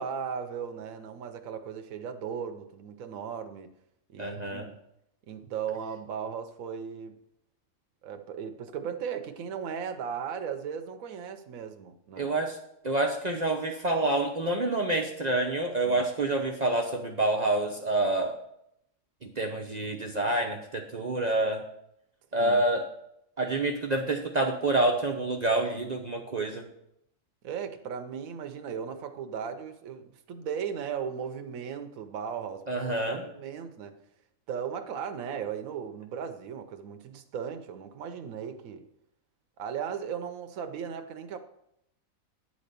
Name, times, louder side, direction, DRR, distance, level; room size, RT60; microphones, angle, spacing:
voice 1, 0.0-3.7 4.1-4.7 5.3-7.2 8.0-12.3 15.8-16.1 22.4-22.6 27.4-34.0 34.5-38.9 39.6-41.4, right 7 dB, 80° right, 7 dB, 1.1 m, -37 dB
voice 2, 4.2-4.7 12.2-12.6 12.8-18.4 19.2-21.7 22.3-22.9 23.4-26.6 32.7-33.3, right 2 dB, 40° right, 1 dB, 0.7 m, -27 dB
9.7 x 4.2 x 6.6 m, 0.78 s
omnidirectional pair, 1.4 m